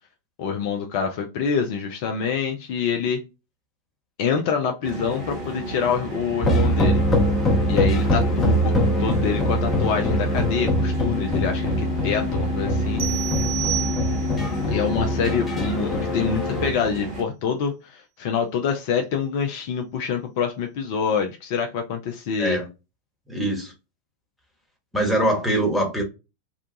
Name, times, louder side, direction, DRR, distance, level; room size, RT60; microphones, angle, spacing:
voice 1, 0.4-3.2 4.2-7.0 7.7-13.0 14.7-22.6, left 6 dB, 45° left, 0.5 m, -26 dB
sound 1, 4.8-17.2, right 1 dB, 35° right, 1.3 m, -34 dB
sound 2, 6.4-16.7, equal, 15° left, 0.8 m, -23 dB
sound 3, 13.0-14.5, right 14 dB, 55° right, 0.4 m, -30 dB
voice 2, 23.3-23.7 24.9-26.0, right 1 dB, ahead, 1.1 m, -23 dB
2.8 x 2.2 x 2.6 m
figure-of-eight pair, 90°, 0 cm